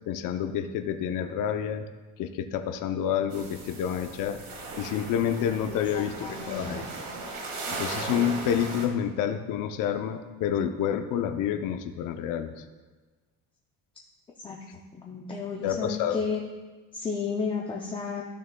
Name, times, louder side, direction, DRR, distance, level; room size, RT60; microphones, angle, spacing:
voice 1, 0.1-1.8 2.2-4.4 4.8-6.8 7.7-12.5 15.6-16.2, left 9 dB, 55° left, 8 dB, 0.6 m, -29 dB
sound 1, 3.3-8.9, right 3 dB, 70° right, 1.7 m, -37 dB
voice 2, 5.7-6.7 14.4-14.6 14.9-16.4 16.9-18.2, left 5 dB, 15° left, -1 dB, 0.4 m, -32 dB
13.5 x 6.4 x 2.2 m, 1.3 s
cardioid pair, 180°, 38 cm